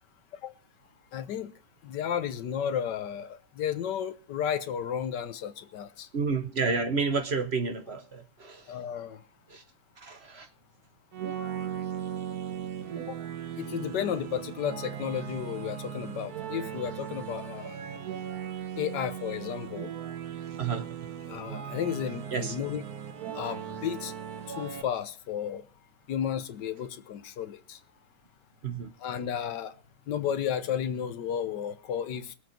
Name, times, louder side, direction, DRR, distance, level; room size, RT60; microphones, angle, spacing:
voice 1, 1.1-1.5 1.8-3.3 3.6-6.1 8.7-9.2 13.1-13.2 13.6-17.8 18.8-19.9 21.3-22.8 23.3-24.1 24.6-25.6 26.1-27.8 29.0-29.7 30.1-32.3, left 9 dB, 80° left, 1.6 m, -33 dB
voice 2, 6.1-8.6 9.5-9.6 10.0-10.5 20.6-21.2 22.3-22.5 28.6-28.9, right 4 dB, 45° right, 1.0 m, -30 dB
sound 1, 11.1-24.8, right 9 dB, 65° right, 1.5 m, -38 dB
20.5 x 8.2 x 4.4 m
omnidirectional pair, 1.8 m